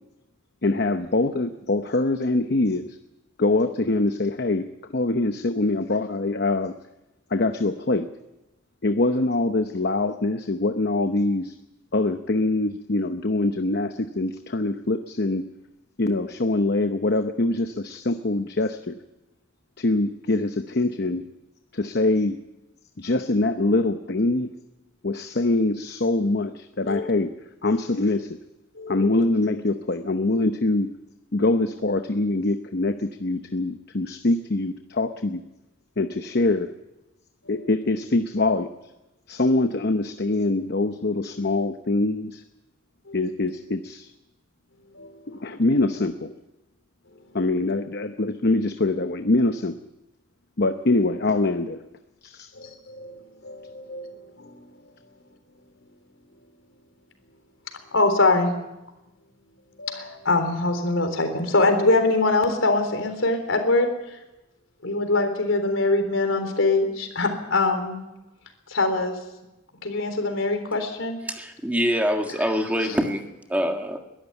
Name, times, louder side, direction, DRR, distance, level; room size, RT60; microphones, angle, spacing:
voice 1, 0.6-3.0 3.4-4.7 4.9-6.7 7.3-8.1 8.8-11.5 11.9-15.4 16.0-19.0 19.8-21.2 21.7-22.4 23.0-24.5 25.0-27.3 27.6-28.4 28.9-30.9 31.3-35.4 36.0-36.7 37.5-38.7 39.3-42.4 43.1-44.1 45.3-46.3 47.3-49.8 50.6-51.8 52.2-52.5, left 2 dB, 55° left, 8 dB, 0.9 m, -24 dB
voice 2, 28.8-29.2 43.1-43.2 44.9-45.1 52.6-53.1 53.4-54.5 57.9-58.5 59.8-63.9 64.8-68.0 68.7-69.1 69.8-71.2, left 2 dB, 85° left, 6 dB, 3.8 m, -23 dB
voice 3, 71.3-73.2 73.5-74.0, equal, 10° right, 4 dB, 1.7 m, -24 dB
22.0 x 12.5 x 9.2 m, 0.97 s
head